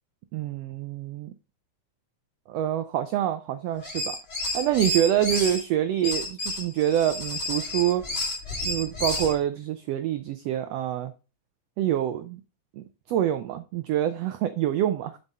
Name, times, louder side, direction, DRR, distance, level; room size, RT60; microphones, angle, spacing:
voice 1, 0.3-1.3 2.5-4.2 4.5-8.0 8.6-11.1 11.8-12.4 12.7-15.2, right 11 dB, 85° right, 1.4 m, -26 dB
sound 1, 3.8-5.6 6.0-9.4, left 1 dB, 20° left, 2.5 m, -30 dB
7.1 x 5.4 x 4.1 m
omnidirectional pair, 3.5 m